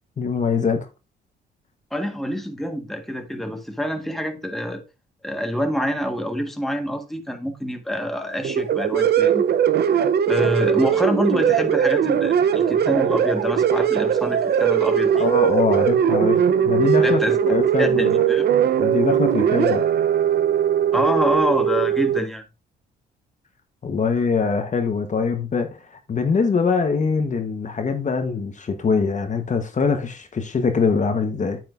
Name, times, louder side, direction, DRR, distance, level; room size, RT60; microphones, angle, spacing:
voice 1, 0.2-0.9 15.1-18.3 18.8-19.8 23.8-31.6, left 5 dB, 40° left, 1.2 m, -23 dB
voice 2, 1.9-4.8 5.2-9.4 10.3-15.3 17.0-17.4 17.8-18.5 20.9-22.4, equal, ahead, 1.5 m, -26 dB
sound 1, 8.4-22.2, right 8 dB, 55° right, 0.7 m, -20 dB
9.0 x 7.9 x 2.5 m
cardioid pair, 90°, 20 cm